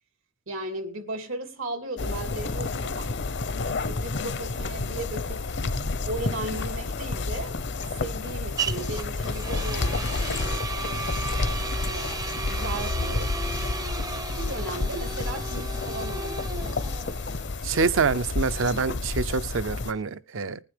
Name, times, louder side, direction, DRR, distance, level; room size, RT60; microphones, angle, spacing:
voice 1, 0.5-3.1 3.5-5.5 6.1-7.5 8.0-10.8 11.9-13.3 14.0-16.8, right 2 dB, 90° right, 2.7 m, -36 dB
sound 1, 2.0-19.9, left 3 dB, 60° left, 0.7 m, -30 dB
sound 2, 6.2-20.0, right 4 dB, 20° right, 0.5 m, -36 dB
voice 2, 17.6-20.6, right 5 dB, 65° right, 0.6 m, -26 dB
20.0 x 9.5 x 3.3 m
head